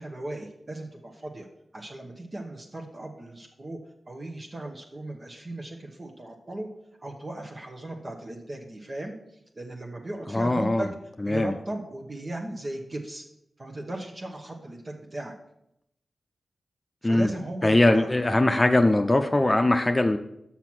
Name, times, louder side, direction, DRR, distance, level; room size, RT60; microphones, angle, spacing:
voice 1, 0.0-1.5 1.7-3.8 4.1-6.7 7.0-10.9 11.2-13.3 13.6-15.3 17.0-18.1, right 1 dB, 45° right, 1 dB, 1.0 m, -37 dB
voice 2, 10.3-10.9 11.2-11.5 17.0-17.3 17.6-20.2, left 1 dB, 30° left, 6 dB, 0.6 m, -21 dB
5.9 x 5.8 x 6.0 m, 0.80 s
cardioid pair, 40°, 0 cm